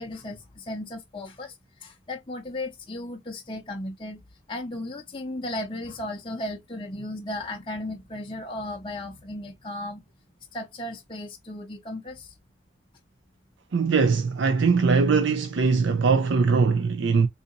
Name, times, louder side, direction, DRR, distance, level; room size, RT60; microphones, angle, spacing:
voice 1, 0.0-4.2 4.5-10.0 10.5-12.3, left 1 dB, 25° left, 0.6 m, -35 dB
voice 2, 13.7-17.3, right 4 dB, 65° right, 0.4 m, -21 dB
3.9 x 2.7 x 2.6 m
head